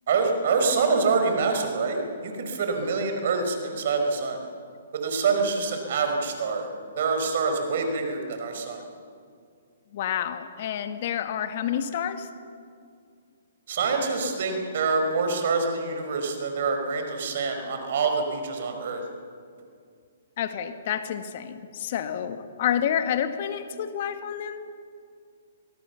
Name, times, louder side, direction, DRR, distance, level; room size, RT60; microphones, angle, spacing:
voice 1, 0.1-4.4 4.9-6.7 7.0-8.8 13.7-19.0, right 4 dB, 60° right, 5 dB, 5.0 m, -26 dB
voice 2, 9.9-12.3 20.4-24.7, left 9 dB, 50° left, 9 dB, 1.8 m, -29 dB
24.5 x 18.0 x 7.2 m, 2.2 s
hypercardioid pair, 135°, 0 cm